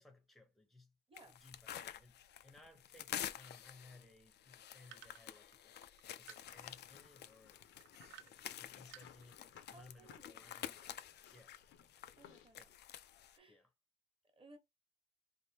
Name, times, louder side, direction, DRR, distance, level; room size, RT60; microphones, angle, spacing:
voice 1, 0.0-0.9 1.3-5.8 6.2-7.7 8.1-9.4 9.7-10.8 11.3-11.6 12.6-12.7 13.5-13.7, left 2 dB, ahead, 0.8 m, -62 dB
voice 2, 1.1-1.4 9.7-10.5 12.2-13.0 13.3-13.6 14.3-14.6, right 2 dB, 25° right, 1.2 m, -62 dB
sound 1, 1.2-13.4, left 11 dB, 55° left, 0.4 m, -50 dB
sound 2, 4.9-6.9 7.7-8.6 8.9-9.6, right 12 dB, 75° right, 0.4 m, -57 dB
sound 3, 6.4-12.8, left 8 dB, 80° left, 0.8 m, -63 dB
3.5 x 2.6 x 2.8 m
cardioid pair, 90°, 20 cm